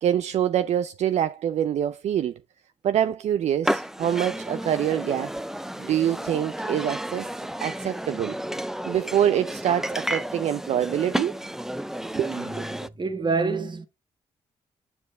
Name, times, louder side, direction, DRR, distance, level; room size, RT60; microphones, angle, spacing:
voice 1, 0.0-2.3 2.8-5.3 5.8-7.3 7.6-8.4 8.9-11.3 12.2-12.3, right 10 dB, 70° right, 0.4 m, -25 dB
sound 1, 3.6-12.9, equal, 5° right, 0.5 m, -32 dB
voice 2, 12.1-13.9, right 4 dB, 40° right, 1.5 m, -28 dB
7.2 x 7.1 x 3.3 m
supercardioid pair, 60°, 12 cm